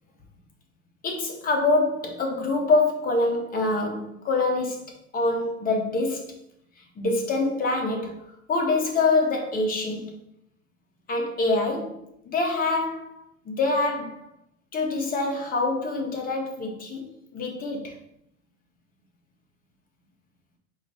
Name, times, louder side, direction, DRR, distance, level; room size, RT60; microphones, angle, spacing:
voice 1, 1.0-4.8 5.1-6.3 6.8-8.2 8.5-10.1 11.1-13.1 13.5-14.3 14.7-17.9, left 2 dB, 20° left, 0.8 m, -25 dB
3.9 x 2.6 x 4.7 m
hypercardioid pair, 115°, 42 cm